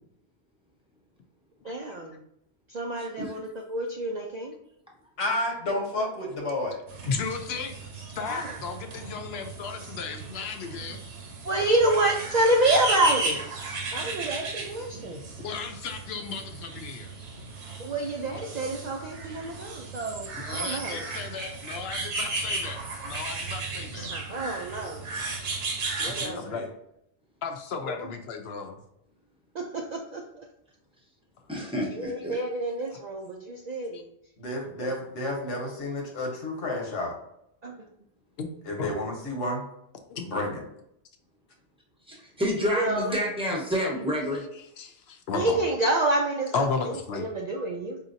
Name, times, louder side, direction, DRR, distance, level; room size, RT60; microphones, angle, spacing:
voice 1, 1.6-2.2 2.7-4.6 8.3-8.5 11.4-13.4 13.9-15.2 17.8-21.0 24.1-25.1 26.0-26.4 27.8-28.1 29.5-30.4 31.9-34.1 34.8-35.0 35.4-35.5 37.6-37.7 42.7-43.1 45.3-46.7 47.1-48.0, right 1 dB, 55° right, 0 dB, 0.5 m, -28 dB
voice 2, 3.0-3.3 31.5-32.4 42.1-44.4, equal, 5° right, -2 dB, 0.9 m, -29 dB
voice 3, 5.2-6.8 26.1-26.7 34.4-37.2 38.7-39.6 40.2-40.6, left 1 dB, 85° left, 1 dB, 1.4 m, -31 dB
sound 1, 6.9-26.3, right 3 dB, 80° right, 1.1 m, -35 dB
voice 4, 7.1-11.0 15.4-17.2 20.3-24.1 26.0-26.6 27.4-28.8 32.9-33.0 33.9-34.0 38.4-38.5 38.8-38.9 40.1-40.2 44.8-45.6 46.5-47.3, left 5 dB, 65° left, 5 dB, 0.8 m, -34 dB
4.9 x 2.8 x 2.5 m, 0.78 s
omnidirectional pair, 1.2 m